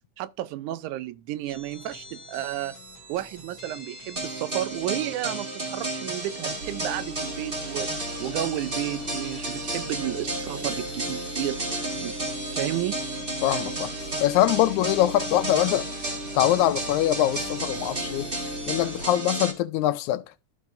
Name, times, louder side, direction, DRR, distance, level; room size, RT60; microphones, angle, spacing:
voice 1, 0.2-2.7 3.1-7.9 8.2-11.6 12.0-12.2 12.5-13.0, right 14 dB, 90° right, 2.0 m, -32 dB
sound 1, 1.4-19.1, left 1 dB, 20° left, 2.2 m, -45 dB
sound 2, 4.2-19.5, right 2 dB, 25° right, 1.2 m, -33 dB
sound 3, 6.6-19.0, equal, 50° right, 1.3 m, -39 dB
voice 2, 13.4-13.9 14.2-15.9 16.4-18.3 18.7-20.2, left 13 dB, 80° left, 1.9 m, -23 dB
13.0 x 4.7 x 2.6 m
omnidirectional pair, 3.4 m